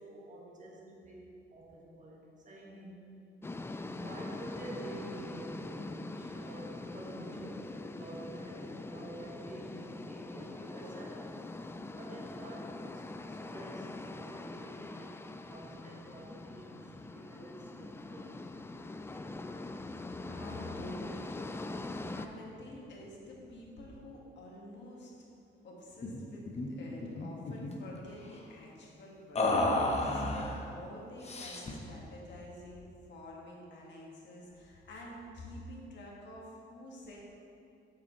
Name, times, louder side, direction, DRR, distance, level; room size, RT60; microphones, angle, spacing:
voice 1, 0.0-3.2 3.9-11.4 11.9-15.2 15.5-18.5, right 1 dB, 40° right, -3 dB, 1.7 m, -49 dB
sound 1, 3.4-22.3, left 2 dB, 10° left, 0.3 m, -43 dB
voice 2, 20.1-25.1 25.6-37.2, left 1 dB, 65° left, -3 dB, 1.8 m, -48 dB
sound 2, 26.0-26.2 26.5-26.7 27.0-27.8 29.3-30.6 31.2-31.8, left 2 dB, 30° left, 0.9 m, -31 dB
8.6 x 6.8 x 3.2 m, 2.6 s
cardioid pair, 90°, 20 cm